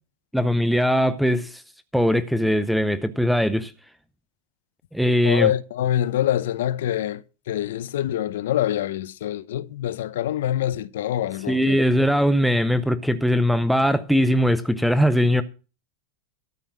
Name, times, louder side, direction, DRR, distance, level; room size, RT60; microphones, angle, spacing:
voice 1, 0.3-1.6 1.9-3.7 4.9-5.5 11.5-15.4, equal, ahead, 0.6 m, -20 dB
voice 2, 5.2-11.8, left 11 dB, 85° left, 0.8 m, -25 dB
13.0 x 5.7 x 7.3 m
supercardioid pair, 165°, 0 cm